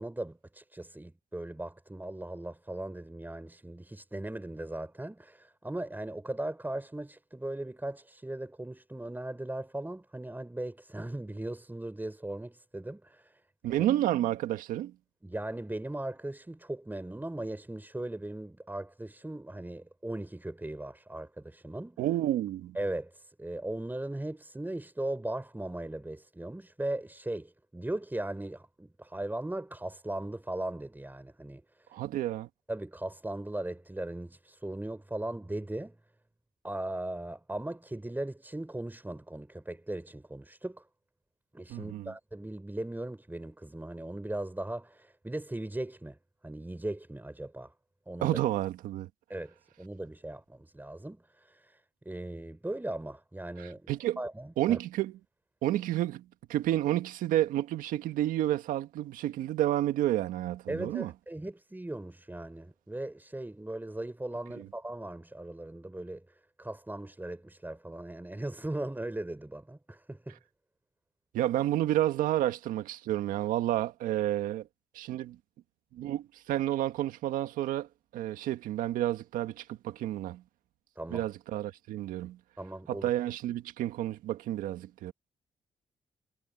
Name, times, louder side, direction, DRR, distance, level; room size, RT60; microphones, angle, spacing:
voice 1, 0.0-13.4 13.7-13.9 15.2-22.0 22.7-32.0 32.7-36.0 36.6-40.9 41.5-46.2 46.4-47.7 48.1-48.4 49.3-54.8 60.7-70.4 81.0-81.3 82.6-83.1, right 1 dB, 15° right, 5.4 m, -38 dB
voice 2, 13.6-14.9 22.0-22.8 31.9-32.5 41.7-42.1 48.2-49.1 53.6-54.2 54.6-55.1 55.6-56.2 56.5-61.1 64.6-64.7 71.3-74.7 74.9-75.3 75.9-77.9 78.1-80.4 81.1-82.4 82.9-85.1, right 13 dB, 85° right, 1.7 m, -30 dB
supercardioid pair, 50°, 14 cm